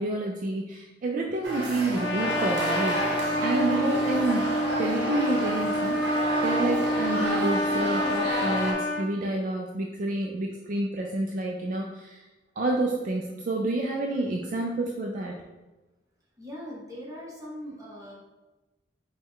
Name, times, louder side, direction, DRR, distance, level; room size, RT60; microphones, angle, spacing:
voice 1, 0.0-4.5 4.8-12.2 12.6-15.3, right 2 dB, 50° right, 0 dB, 0.4 m, -29 dB
sound 1, 1.4-8.7, right 1 dB, 70° right, 0.9 m, -31 dB
Trumpet, 1.9-9.1, left 1 dB, 75° left, 0.6 m, -28 dB
voice 2, 16.4-18.1, equal, 20° right, -5 dB, 1.1 m, -40 dB
5.2 x 2.3 x 3.7 m, 1.1 s
head